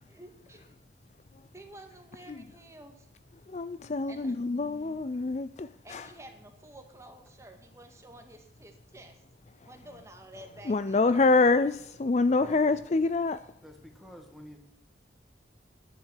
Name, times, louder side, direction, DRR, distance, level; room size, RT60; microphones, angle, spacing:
voice 1, 0.1-0.8 1.5-3.1 4.1-4.3 5.8-9.2 9.6-11.0, right 1 dB, 15° right, 1.9 m, -50 dB
voice 2, 3.5-6.1 10.7-13.4, left 3 dB, 35° left, 0.4 m, -26 dB
voice 3, 13.6-14.6, equal, ahead, 2.0 m, -49 dB
11.0 x 10.5 x 6.5 m
head